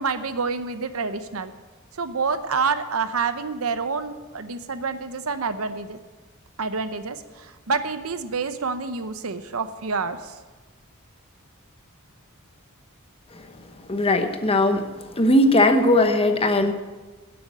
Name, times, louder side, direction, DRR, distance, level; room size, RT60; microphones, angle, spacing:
voice 1, 0.0-1.5 1.9-6.0 6.6-10.3, right 4 dB, 80° right, 11 dB, 0.8 m, -28 dB
voice 2, 13.9-14.8 15.2-16.7, left 1 dB, 25° left, 7 dB, 1.0 m, -18 dB
12.0 x 7.8 x 7.5 m, 1.3 s
head